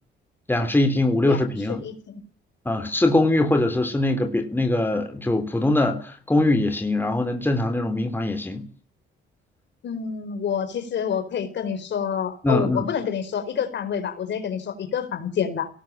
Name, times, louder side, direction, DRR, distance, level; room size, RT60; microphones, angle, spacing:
voice 1, 0.5-1.8 2.7-8.6 12.4-12.9, left 2 dB, 10° left, 6 dB, 3.6 m, -22 dB
voice 2, 1.7-2.2 9.8-15.7, left 7 dB, 65° left, 8 dB, 4.7 m, -28 dB
19.0 x 18.0 x 8.9 m, 0.43 s
cardioid pair, 90°, 20 cm